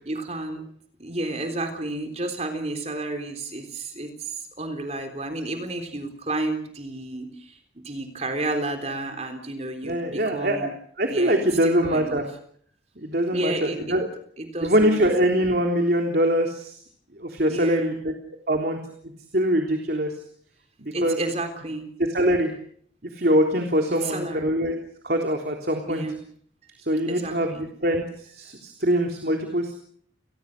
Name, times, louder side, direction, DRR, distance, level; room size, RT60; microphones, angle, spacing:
voice 1, 0.1-0.7 1.0-7.6 7.8-10.7 11.1-11.4 11.6-12.2 13.3-14.0 14.4-15.0 17.5-18.0 20.9-21.9 23.9-24.6 25.9-26.2 26.6-26.7 27.1-27.7, right 2 dB, 35° right, 6 dB, 3.8 m, -31 dB
voice 2, 9.8-10.7 11.0-12.2 13.0-14.1 14.6-16.7 17.2-18.1 18.5-18.8 19.3-20.1 20.8-21.2 22.1-22.5 23.0-24.8 25.0-26.0 26.8-29.7, equal, 55° right, 3 dB, 3.6 m, -23 dB
30.0 x 20.5 x 6.7 m, 0.63 s
head